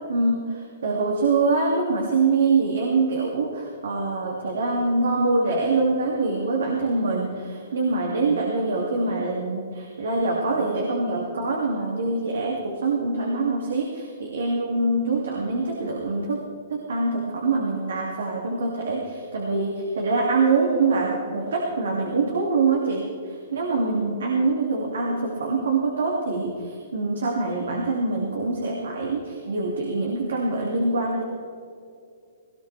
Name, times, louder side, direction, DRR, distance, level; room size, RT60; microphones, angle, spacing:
voice 1, 0.1-16.4 16.7-31.2, right 3 dB, 80° right, -1 dB, 2.5 m, -24 dB
18.5 x 18.0 x 3.4 m, 2.4 s
hypercardioid pair, 135°, 0 cm